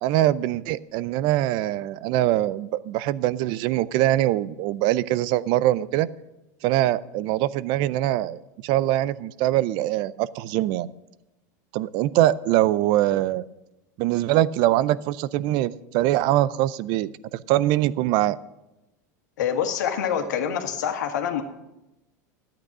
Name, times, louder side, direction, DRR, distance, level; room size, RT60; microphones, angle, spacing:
voice 1, 0.0-6.1 6.6-10.9 11.7-13.4 14.0-18.4, right 14 dB, 55° right, 18 dB, 0.5 m, -23 dB
voice 2, 19.4-21.4, left 8 dB, 75° left, 5 dB, 1.8 m, -26 dB
13.0 x 8.9 x 6.1 m, 0.95 s
hypercardioid pair, 110°, 10 cm